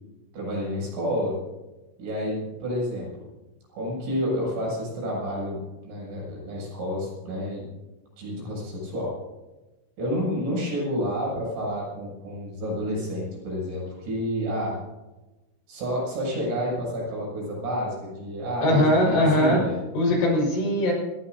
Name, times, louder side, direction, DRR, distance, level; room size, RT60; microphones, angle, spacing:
voice 1, 0.3-1.3 2.0-3.1 3.7-7.7 8.2-9.1 10.0-14.8 15.7-19.8, equal, 65° right, -4 dB, 9.6 m, -29 dB
voice 2, 18.6-19.6 19.9-20.9, left 1 dB, 65° left, -1 dB, 7.6 m, -20 dB
28.0 x 17.5 x 2.8 m, 1.1 s
omnidirectional pair, 5.7 m